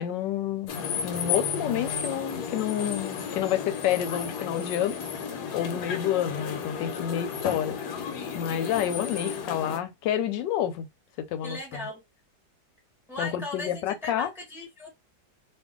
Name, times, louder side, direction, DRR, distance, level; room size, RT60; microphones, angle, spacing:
voice 1, 0.0-5.0 5.5-7.8 8.3-10.9 11.3-11.6 13.2-14.3, left 10 dB, 90° left, 1.3 m, -29 dB
sound 1, 0.7-9.8, left 7 dB, 70° left, 1.2 m, -33 dB
voice 2, 9.2-9.6 11.4-12.0 13.1-14.9, left 2 dB, ahead, 0.9 m, -38 dB
2.8 x 2.6 x 3.6 m
omnidirectional pair, 1.9 m